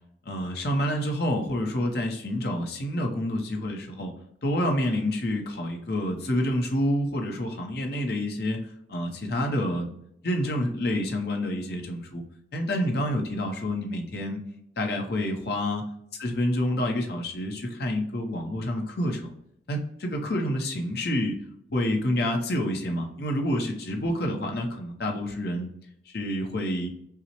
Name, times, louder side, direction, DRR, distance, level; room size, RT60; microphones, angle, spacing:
voice 1, 0.3-4.1 4.4-8.6 8.9-9.9 10.2-12.2 12.5-14.4 14.8-15.8 16.2-19.3 19.7-21.4 21.7-25.7 26.1-26.9, left 1 dB, 55° left, 3 dB, 0.7 m, -28 dB
5.7 x 2.0 x 2.9 m, 0.75 s
head